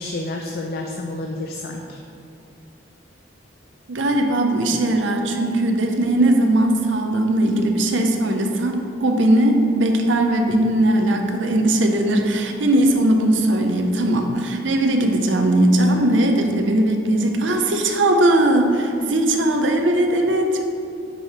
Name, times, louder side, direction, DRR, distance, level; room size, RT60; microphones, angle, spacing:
voice 1, 0.0-2.0, left 2 dB, 55° left, 2 dB, 0.4 m, -30 dB
voice 2, 3.9-20.6, right 1 dB, 80° right, 4 dB, 0.6 m, -19 dB
5.4 x 4.8 x 4.1 m, 2.6 s
head